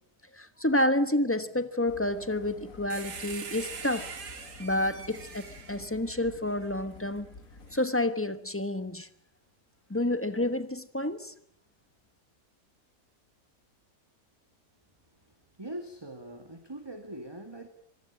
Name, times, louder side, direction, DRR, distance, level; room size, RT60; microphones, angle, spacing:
voice 1, 0.3-4.1 4.6-7.3 7.7-9.1 9.9-11.3, left 1 dB, 10° left, 1.0 m, -29 dB
sound 1, 1.9-7.8, left 3 dB, 55° left, 2.3 m, -50 dB
sound 2, 2.9-6.7 7.7-7.8, right 5 dB, 75° right, 2.6 m, -43 dB
voice 2, 15.1-17.7, right 1 dB, 15° right, 2.2 m, -42 dB
25.5 x 19.5 x 8.6 m
omnidirectional pair, 1.8 m